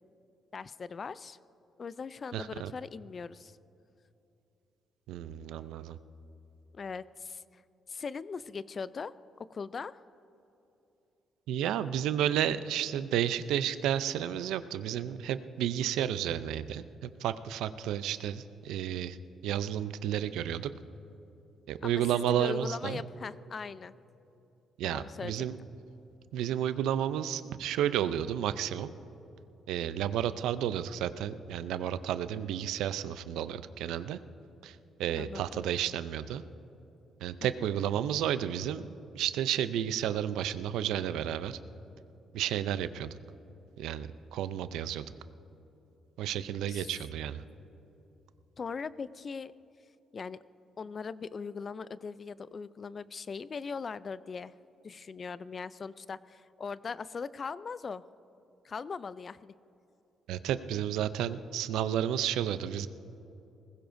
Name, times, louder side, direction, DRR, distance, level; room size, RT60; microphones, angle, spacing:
voice 1, 0.5-1.4 1.8-3.6 6.7-7.6 7.9-9.1 9.4-10.0 21.8-23.9 24.8-25.5 35.2-35.6 37.4-37.8 46.7-47.0 48.6-49.5 50.1-50.4 50.8-54.5 54.8-58.0 58.6-59.5, left 5 dB, 40° left, 17 dB, 0.3 m, -40 dB
voice 2, 2.3-2.7 5.1-6.0 11.5-19.2 19.4-20.7 21.7-23.0 24.8-25.6 26.3-28.9 29.7-34.2 34.6-36.4 37.2-41.6 42.3-43.2 43.8-45.0 46.2-47.4 60.3-62.9, right 10 dB, 90° right, 13 dB, 0.4 m, -32 dB
20.0 x 15.5 x 2.6 m, 2.9 s
cardioid pair, 90°, 0 cm